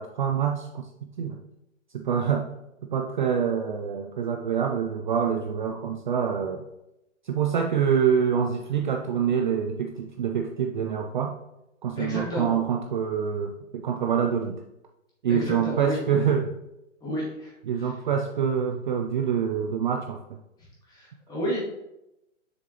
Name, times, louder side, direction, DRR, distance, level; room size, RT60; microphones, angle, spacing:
voice 1, 0.0-1.4 1.9-2.5 2.9-6.6 7.2-11.4 11.8-14.6 15.2-16.5 17.7-20.4, right 7 dB, 40° right, 4 dB, 0.5 m, -26 dB
voice 2, 12.0-12.6 15.3-16.0 17.0-17.9 20.9-21.6, equal, 10° left, -5 dB, 2.4 m, -31 dB
7.1 x 6.6 x 3.2 m, 0.90 s
hypercardioid pair, 145°, 40 cm